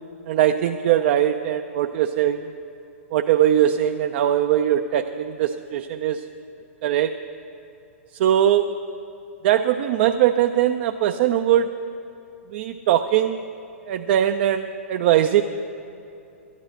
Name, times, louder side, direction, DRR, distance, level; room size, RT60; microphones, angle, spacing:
voice 1, 0.3-2.5 3.1-6.2 6.8-7.1 8.2-8.7 9.4-11.7 12.5-13.4 13.9-15.4, right 11 dB, 50° right, 7 dB, 0.4 m, -20 dB
12.0 x 10.0 x 6.5 m, 2.6 s
figure-of-eight pair, 110°, 8 cm